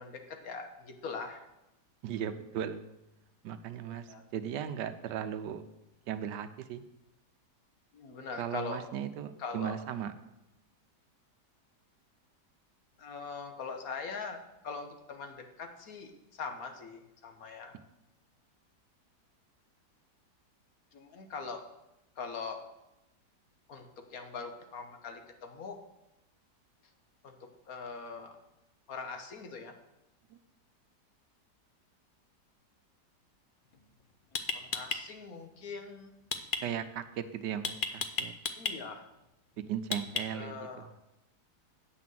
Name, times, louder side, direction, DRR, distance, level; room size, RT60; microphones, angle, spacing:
voice 1, 0.0-1.4 3.9-4.2 7.9-8.8 9.4-9.8 13.0-14.4 14.6-17.8 20.9-21.6 22.2-22.6 23.7-25.8 27.2-28.4 28.9-29.7 34.5-36.1 38.6-39.1 40.3-40.9, left 5 dB, 60° left, 5 dB, 1.4 m, -42 dB
voice 2, 2.0-2.9 3.4-5.6 6.1-6.9 8.4-10.1 30.3-30.4 36.6-38.3 39.6-40.6, right 9 dB, 85° right, 11 dB, 1.3 m, -37 dB
sound 1, 33.7-33.9 34.3-35.0 36.3-36.6 37.6-38.7 39.9-40.5, left 5 dB, 75° left, 0.4 m, -32 dB
8.5 x 5.9 x 7.5 m, 0.92 s
omnidirectional pair, 1.8 m